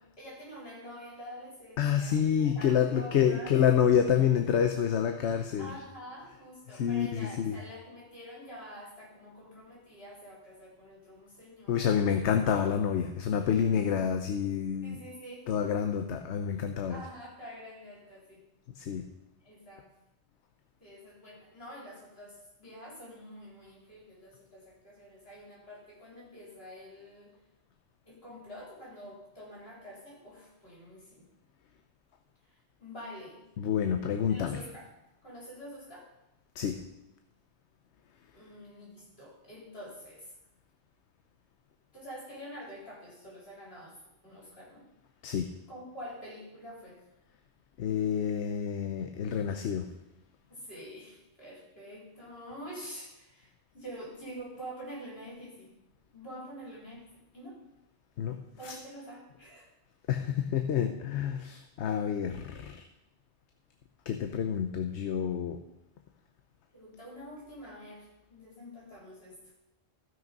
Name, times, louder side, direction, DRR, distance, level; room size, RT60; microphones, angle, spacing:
voice 1, 0.0-3.6 5.6-11.9 14.8-15.7 16.9-18.4 19.4-19.9 20.8-27.3 28.0-31.3 32.5-32.6 32.8-33.5 34.3-34.9 35.2-36.1 38.3-40.3 41.9-44.0 44.2-44.9 45.2-45.4 45.7-47.0 50.5-55.7 56.1-57.1 57.3-57.6 58.6-59.7 66.7-69.4, equal, 60° left, -5 dB, 4.5 m, -47 dB
voice 2, 1.8-5.7 6.7-7.6 11.7-15.0 15.5-17.0 18.8-19.0 33.6-34.6 36.6-36.8 45.2-45.5 47.8-49.8 58.2-58.4 58.6-58.7 60.1-62.8 64.1-65.6, left 8 dB, 80° left, 6 dB, 1.0 m, -28 dB
14.5 x 6.3 x 5.2 m, 0.90 s
omnidirectional pair, 1.2 m